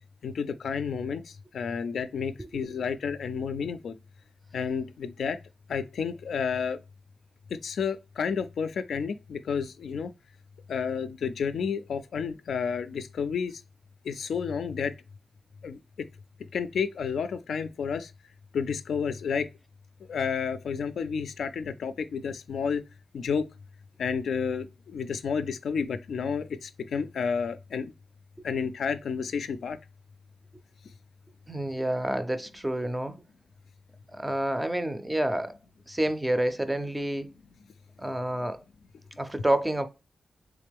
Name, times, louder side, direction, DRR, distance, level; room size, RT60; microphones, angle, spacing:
voice 1, 0.2-4.0 4.5-5.4 5.7-6.8 7.5-10.1 10.7-13.6 14.0-14.9 15.6-16.1 16.5-18.1 18.5-19.5 20.1-22.8 23.1-23.4 24.0-27.9 28.4-29.8, left 6 dB, 80° left, 0.3 m, -31 dB
voice 2, 31.5-33.2 34.1-35.6 35.9-37.3 38.0-38.6 39.2-39.9, right 1 dB, 10° right, 0.4 m, -28 dB
3.6 x 3.3 x 3.4 m
wide cardioid pair, 150°, 0 cm